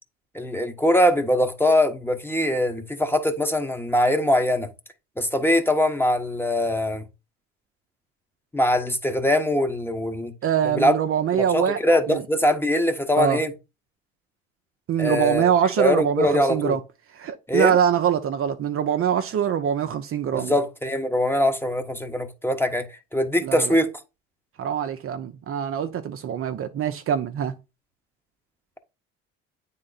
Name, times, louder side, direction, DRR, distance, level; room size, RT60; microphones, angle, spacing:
voice 1, 0.3-4.7 5.2-7.0 8.5-10.3 10.6-10.9 11.3-13.5 15.0-15.5 15.8-16.8 17.5-17.7 20.3-22.8 23.1-23.9, left 1 dB, 5° left, 1.2 m, -22 dB
voice 2, 10.4-11.8 12.1-12.2 13.2-13.4 14.9-16.8 17.1-20.6 23.4-23.7 24.6-27.5, right 8 dB, 40° right, 0.7 m, -23 dB
8.7 x 3.8 x 4.1 m
hypercardioid pair, 70°, 32 cm